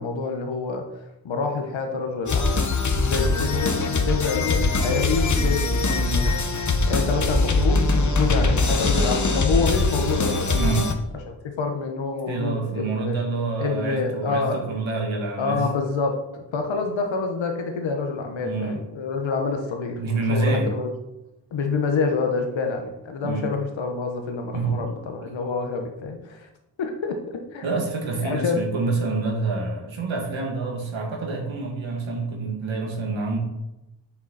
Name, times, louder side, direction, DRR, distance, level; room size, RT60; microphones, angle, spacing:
voice 1, 0.0-2.6 2.9-6.4 6.9-10.6 11.3-13.2 13.6-14.6 15.4-20.9 21.5-26.5 26.8-27.7 28.2-28.6, left 4 dB, 75° left, 3 dB, 1.1 m, -27 dB
sound 1, 2.3-10.9, left 3 dB, 40° left, 1.0 m, -22 dB
voice 2, 10.5-10.9 12.3-15.7 18.4-18.8 20.0-20.7 23.2-23.5 24.5-24.7 25.2-25.3 27.6-33.4, right 3 dB, 80° right, 0 dB, 2.1 m, -27 dB
9.5 x 6.1 x 4.1 m, 0.96 s
wide cardioid pair, 110°, 46 cm